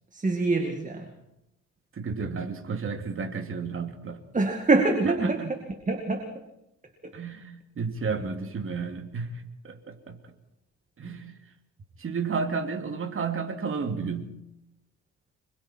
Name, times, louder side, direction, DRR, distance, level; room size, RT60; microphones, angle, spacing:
voice 1, 0.1-1.1 4.3-5.6 5.9-6.3 7.0-7.1, right 3 dB, 25° right, 5 dB, 2.3 m, -25 dB
voice 2, 1.9-4.2 5.0-5.5 7.1-10.3 11.0-11.4 12.0-14.3, right 5 dB, 45° right, 5 dB, 2.8 m, -32 dB
26.0 x 22.5 x 4.5 m, 0.84 s
cardioid pair, 90°, 30 cm